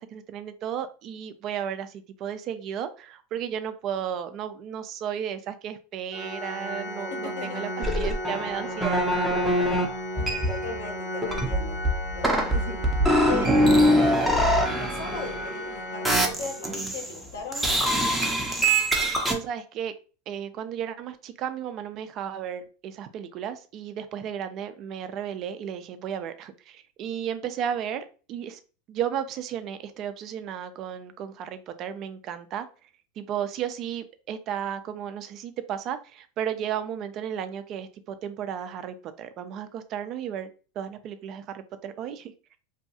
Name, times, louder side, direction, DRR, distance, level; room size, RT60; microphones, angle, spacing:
voice 1, 0.0-9.4 12.5-12.8 19.3-19.9 20.3-28.6 28.9-32.7 33.2-40.5 40.8-42.3, right 9 dB, 45° right, 10 dB, 0.4 m, -34 dB
Organ, 6.1-17.0, equal, 35° left, 0.7 m, -35 dB
voice 2, 7.1-7.6 10.2-11.8 12.1-12.8 13.2-17.7, left 4 dB, 80° left, 3 dB, 0.8 m, -38 dB
sound 1, 7.8-9.8 10.2-10.9 11.2-15.7 16.0-17.2 17.5-19.3, equal, 5° right, 0.6 m, -24 dB
2.7 x 2.2 x 2.7 m, 0.36 s
hypercardioid pair, 115°, 0 cm